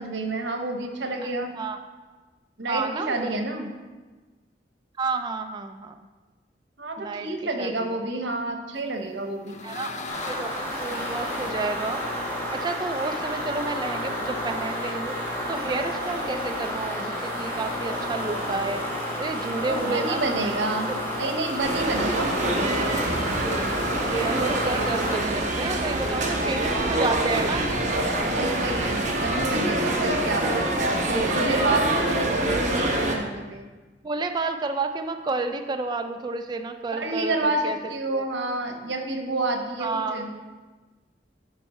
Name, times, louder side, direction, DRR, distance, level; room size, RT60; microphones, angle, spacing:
voice 1, 0.0-1.5 2.6-3.7 6.8-9.6 19.5-22.7 26.2-26.8 28.3-33.7 36.9-40.3, right 2 dB, 90° right, 4 dB, 0.9 m, -29 dB
voice 2, 2.7-3.3 5.0-6.0 7.0-7.3 7.6-8.1 9.6-9.9 10.2-12.0 12.5-15.2 15.5-18.8 19.2-20.5 20.9-21.0 24.0-27.7 34.0-37.8 38.1-38.2 39.8-40.2, right 3 dB, 25° right, 6 dB, 0.3 m, -30 dB
sound 1, 9.0-13.7, left 3 dB, 40° left, 0.5 m, -40 dB
sound 2, 10.1-25.2, equal, 15° left, 2.4 m, -31 dB
sound 3, 21.6-33.2, right 1 dB, 45° right, 1.0 m, -25 dB
11.0 x 4.4 x 4.2 m, 1.3 s
head